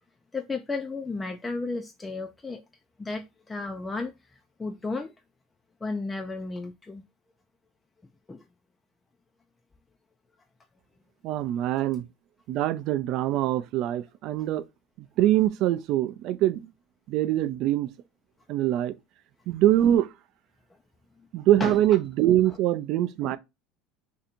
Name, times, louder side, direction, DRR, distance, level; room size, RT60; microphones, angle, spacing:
voice 1, 0.3-2.6 3.0-5.1 5.8-7.0 8.3-8.4 21.6-21.8 23.2-23.3, left 3 dB, 15° left, 0.3 m, -33 dB
voice 2, 11.2-12.0 12.5-14.6 15.2-16.7 17.1-17.9 18.5-18.9 19.5-20.1 21.3-23.4, right 13 dB, 55° right, 0.4 m, -23 dB
2.7 x 2.5 x 4.2 m
supercardioid pair, 120°, 0 cm